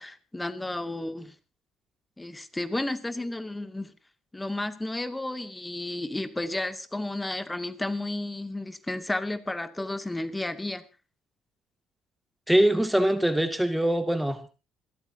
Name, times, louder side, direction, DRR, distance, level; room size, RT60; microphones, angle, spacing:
voice 1, 0.0-1.3 2.2-3.9 4.3-10.8, left 2 dB, 15° left, 9 dB, 2.2 m, -32 dB
voice 2, 12.5-14.5, right 1 dB, 5° right, 7 dB, 2.1 m, -23 dB
28.0 x 13.5 x 2.8 m, 0.31 s
hypercardioid pair, 55°, 0 cm